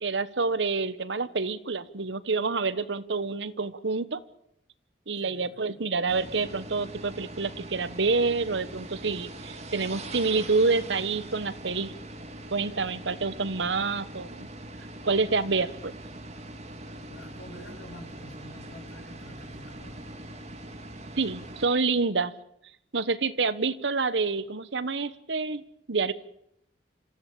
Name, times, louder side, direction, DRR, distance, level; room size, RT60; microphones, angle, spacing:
voice 1, 0.0-4.2 5.1-11.9 12.5-14.5 15.0-15.9 21.2-22.3 22.9-25.6 25.9-26.1, right 4 dB, 75° right, 15 dB, 1.1 m, -27 dB
voice 2, 5.1-5.8 17.0-20.1, equal, 75° left, 4 dB, 6.0 m, -48 dB
sound 1, 6.1-21.7, right 1 dB, 35° right, 2.5 m, -42 dB
27.0 x 14.5 x 8.6 m, 0.76 s
head